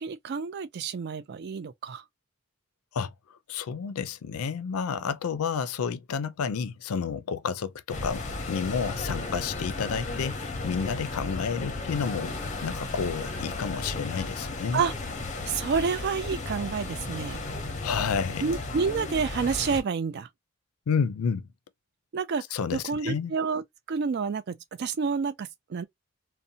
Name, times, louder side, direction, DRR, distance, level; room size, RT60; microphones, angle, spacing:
voice 1, 0.0-2.0 14.7-14.9 15.5-17.4 18.4-20.3 22.1-22.4 22.7-23.6 23.9-25.8, right 5 dB, 50° right, 0.3 m, -29 dB
voice 2, 3.5-8.2 8.5-12.4 12.6-14.8 17.8-18.5 20.9-21.5 22.5-23.3, left 6 dB, 80° left, 0.4 m, -30 dB
sound 1, 7.9-19.8, left 2 dB, 35° left, 0.6 m, -34 dB
2.6 x 2.1 x 2.6 m
head